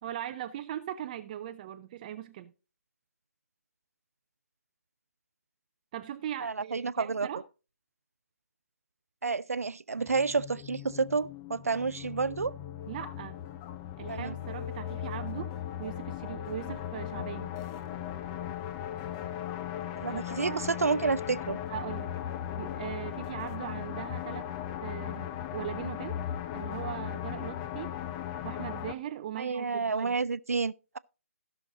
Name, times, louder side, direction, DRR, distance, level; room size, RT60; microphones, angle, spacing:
voice 1, 0.0-2.5 5.9-7.4 12.9-13.4 14.0-15.5 15.8-17.5 20.1-20.7 21.7-22.2 22.6-24.5 24.8-26.2 26.5-28.0 28.4-30.2, right 11 dB, 30° right, 0.5 m, -39 dB
voice 2, 6.4-7.3 9.2-12.5 14.1-14.3 20.0-21.6 29.4-31.0, right 4 dB, 80° right, 0.5 m, -30 dB
sound 1, 10.0-28.9, left 10 dB, 25° left, 0.6 m, -38 dB
15.5 x 6.4 x 3.9 m
figure-of-eight pair, 140°, 8 cm